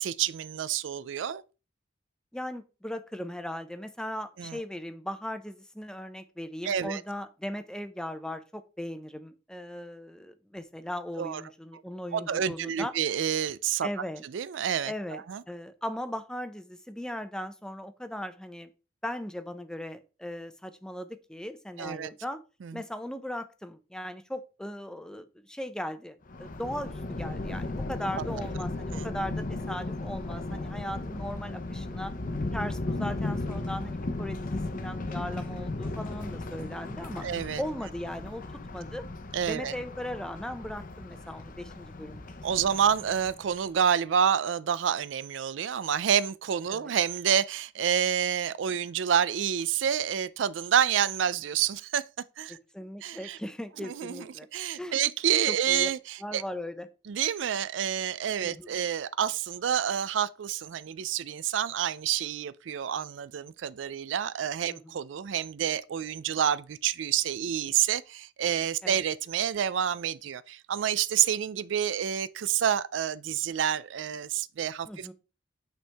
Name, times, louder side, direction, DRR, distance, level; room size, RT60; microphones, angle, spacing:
voice 1, 0.0-1.4 4.4-4.6 6.6-7.0 11.2-11.4 11.7-11.8 12.1-13.9 14.3-15.4 21.8-22.1 22.6-22.8 28.2-28.3 28.9-29.1 37.2-37.6 39.3-39.7 42.4-52.1 52.4-52.6 53.0-53.4 53.8-54.3 54.5-56.4 57.1-75.1, right 9 dB, 80° right, 0.4 m, -28 dB
voice 2, 2.3-12.9 13.8-14.2 14.9-18.7 19.0-22.4 22.7-32.1 32.5-37.3 37.6-38.4 38.7-39.1 39.4-42.3 46.7-46.9 52.5-54.5 54.8-55.0 55.5-55.9 56.2-56.9 58.4-58.7 64.7-64.8 68.8-69.0 74.9-75.1, left 1 dB, 5° left, 0.6 m, -38 dB
Thunder, 26.3-43.7, left 2 dB, 45° left, 0.8 m, -36 dB
9.1 x 4.4 x 3.4 m
head